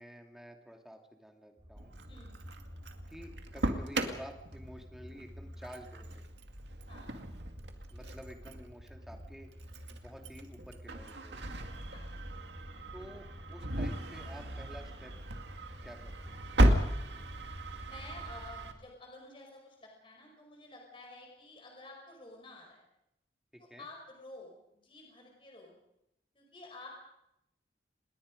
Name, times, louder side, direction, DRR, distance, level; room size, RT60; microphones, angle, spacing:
voice 1, 0.0-1.9 3.1-6.3 7.9-9.5 9.9-11.6 12.9-15.1 15.8-16.4 23.5-23.9, equal, ahead, 3 dB, 2.5 m, -50 dB
sound 1, 1.6-18.3, equal, 25° right, 2.6 m, -51 dB
Engine starting, 1.8-18.7, right 1 dB, 85° right, 2.2 m, -36 dB
voice 2, 2.1-2.4 6.9-7.2 10.9-11.1 11.9-12.2 17.8-22.8 23.6-25.7 26.3-26.9, left 2 dB, 30° left, 0 dB, 4.9 m, -51 dB
27.0 x 21.0 x 5.2 m, 0.83 s
head